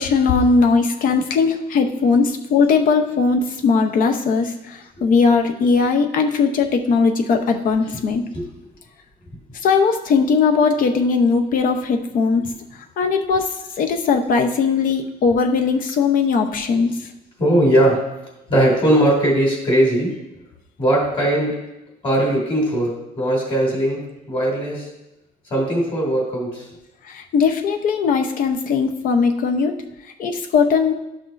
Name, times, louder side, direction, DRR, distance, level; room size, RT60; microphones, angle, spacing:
voice 1, 0.0-4.5 5.0-8.2 9.6-12.4 13.0-13.5 13.8-16.9 27.1-29.7 30.2-30.9, left 5 dB, 55° left, 6 dB, 0.7 m, -18 dB
voice 2, 17.4-18.0 18.5-20.2 20.8-21.6 22.0-24.0 24.3-24.9 25.5-26.7, right 1 dB, 30° left, -2 dB, 2.6 m, -19 dB
12.0 x 6.0 x 2.6 m, 0.94 s
cardioid pair, 160°, 16 cm